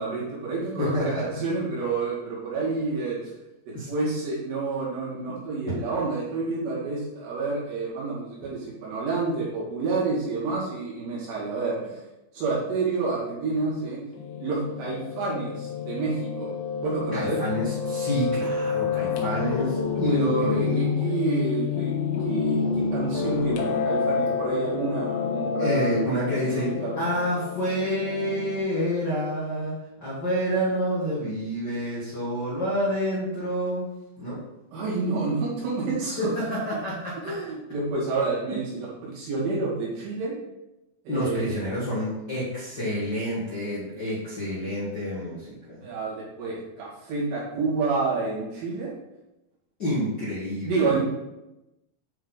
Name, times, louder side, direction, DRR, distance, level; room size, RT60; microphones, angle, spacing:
voice 1, 0.0-3.3 3.7-12.0 12.3-14.0 14.4-16.5 16.8-17.5 20.0-21.9 22.2-27.0 34.7-36.3 37.2-40.3 41.1-41.6 45.8-48.9 50.6-51.0, right 3 dB, 70° right, -7 dB, 4.4 m, -29 dB
voice 2, 0.8-1.2 3.7-3.9 5.7-5.8 17.1-21.2 25.6-26.7 27.0-29.7 30.0-33.9 34.2-34.4 36.2-37.3 38.5-38.6 41.1-45.9 49.8-50.9, equal, 45° left, -10 dB, 1.4 m, -28 dB
Piano, 14.1-28.6, left 6 dB, 80° left, 3.3 m, -29 dB
8.9 x 4.6 x 4.0 m, 0.95 s
omnidirectional pair, 5.1 m